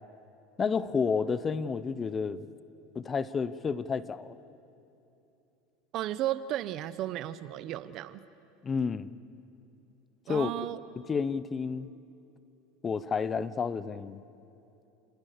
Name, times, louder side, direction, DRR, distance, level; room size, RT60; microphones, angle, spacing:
voice 1, 0.6-2.4 2.9-4.4 8.6-9.1 10.3-10.5 11.0-11.9 12.8-14.2, left 5 dB, 25° left, 16 dB, 0.8 m, -30 dB
voice 2, 5.9-8.2 10.3-10.8, right 13 dB, 50° right, 15 dB, 0.9 m, -34 dB
29.0 x 19.0 x 6.8 m, 2.8 s
supercardioid pair, 105°, 0 cm